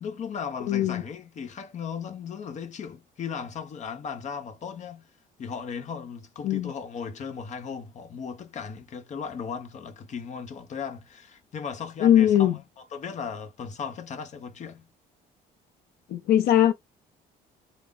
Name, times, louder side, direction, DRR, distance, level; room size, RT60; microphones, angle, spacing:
voice 1, 0.0-5.1 5.4-14.9, left 6 dB, 45° left, 0.9 m, -36 dB
voice 2, 0.7-1.0 6.4-6.7 12.0-12.6 16.1-16.7, left 11 dB, 70° left, 0.5 m, -20 dB
3.4 x 2.1 x 3.8 m
cardioid pair, 110°, 17 cm